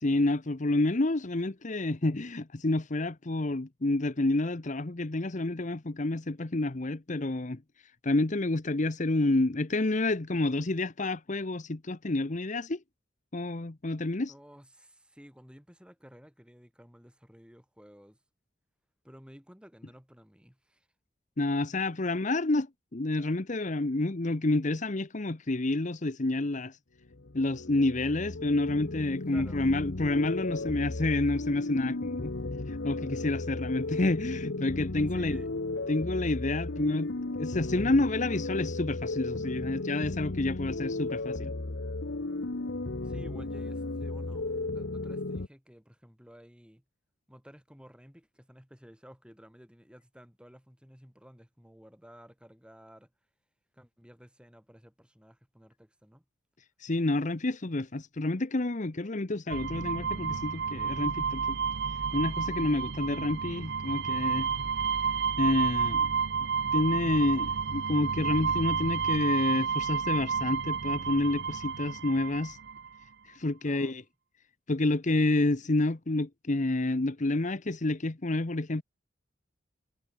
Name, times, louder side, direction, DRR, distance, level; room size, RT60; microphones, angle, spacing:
voice 1, 0.0-7.6 8.0-12.8 13.3-14.3 21.4-26.8 27.3-32.3 32.7-35.4 35.9-41.5 56.8-61.6 62.1-64.5 65.4-66.1 66.7-72.6 73.2-74.0 74.7-78.8, left 2 dB, 40° left, 1.0 m, -29 dB
voice 2, 14.3-18.2 19.0-20.9 29.3-29.7 35.0-35.5 43.0-46.8 47.3-53.1 53.7-56.2 73.6-74.0, equal, 5° right, 6.3 m, -53 dB
sound 1, 27.1-45.5, left 2 dB, 70° left, 1.1 m, -35 dB
sound 2, 59.5-72.9, right 6 dB, 60° right, 0.7 m, -31 dB
head